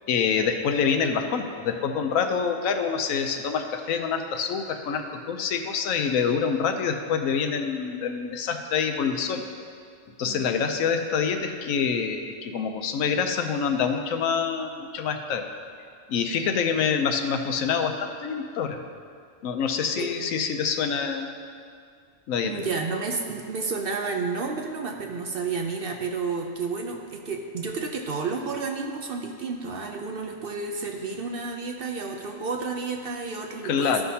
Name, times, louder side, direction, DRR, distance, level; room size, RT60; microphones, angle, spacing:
voice 1, 0.1-9.5 10.2-15.5 16.1-18.8 19.4-21.3 22.3-22.6 33.6-34.0, left 6 dB, 90° left, 6 dB, 1.1 m, -26 dB
voice 2, 10.2-10.7 20.0-20.1 22.4-34.0, right 4 dB, 60° right, 2 dB, 0.6 m, -31 dB
13.5 x 5.8 x 2.8 m, 2.2 s
omnidirectional pair, 1.4 m